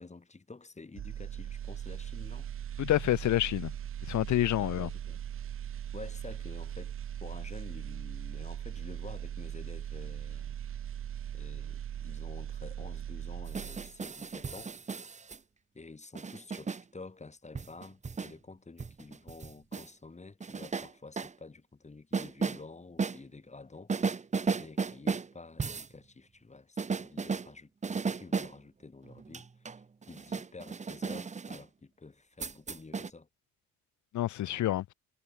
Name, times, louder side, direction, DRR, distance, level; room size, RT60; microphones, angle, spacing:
voice 1, 0.0-2.5 4.6-5.2 5.9-7.0 7.2-10.6 11.3-14.8 15.7-24.2 24.5-27.7 28.1-29.8 30.1-33.3, left 3 dB, 25° left, 5.4 m, -49 dB
sound 1, 1.0-14.1 14.4-14.6, right 10 dB, 45° right, 0.7 m, -39 dB
voice 2, 2.8-3.7 4.1-4.9 34.1-34.9, left 14 dB, 75° left, 1.1 m, -28 dB
sound 2, 13.5-15.4 16.2-16.8 17.6-18.3 18.8-19.9 20.4-21.3 22.1-22.6 23.0-23.2 23.9-25.3 25.6-25.9 26.8-27.5 27.8-28.5 29.1-31.6 32.4-33.1, right 5 dB, 25° right, 0.9 m, -34 dB
cardioid pair, 90°, 30 cm